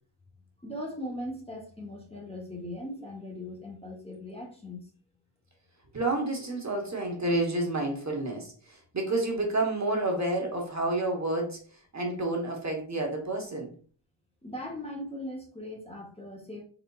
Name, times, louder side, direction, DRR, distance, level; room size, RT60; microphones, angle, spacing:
voice 1, 0.6-4.8 14.4-16.6, left 1 dB, 15° left, -1 dB, 0.9 m, -39 dB
voice 2, 5.9-13.7, right 2 dB, 35° right, 1 dB, 1.1 m, -30 dB
4.2 x 4.0 x 2.3 m, 0.43 s
wide cardioid pair, 120°, 46 cm